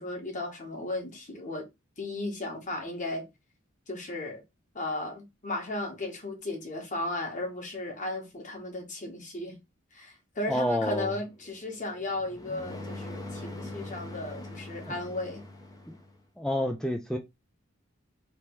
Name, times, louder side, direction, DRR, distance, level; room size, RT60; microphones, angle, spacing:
voice 1, 0.0-1.7 2.0-3.3 3.9-4.4 4.7-9.6 9.9-15.4, left 2 dB, 40° left, 1.5 m, -35 dB
voice 2, 10.5-11.1 14.8-14.9 15.9-16.0 16.4-17.2, equal, 5° left, 0.4 m, -29 dB
sound 1, 10.6-16.2, left 2 dB, 20° left, 0.7 m, -43 dB
3.4 x 2.9 x 4.5 m
head